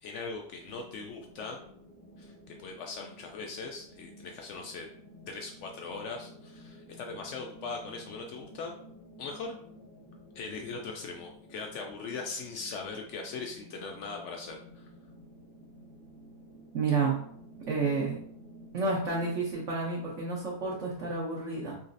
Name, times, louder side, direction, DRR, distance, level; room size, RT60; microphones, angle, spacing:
voice 1, 0.0-1.6 2.2-4.9 5.3-8.7 9.2-9.6 10.3-14.9, left 4 dB, 80° left, 2 dB, 0.6 m, -40 dB
sound 1, 0.6-19.5, equal, 30° left, 0.4 m, -52 dB
voice 2, 16.7-17.2 17.6-18.2 18.7-21.8, right 4 dB, 60° right, -3 dB, 1.0 m, -30 dB
4.0 x 3.0 x 2.5 m, 0.64 s
omnidirectional pair, 1.8 m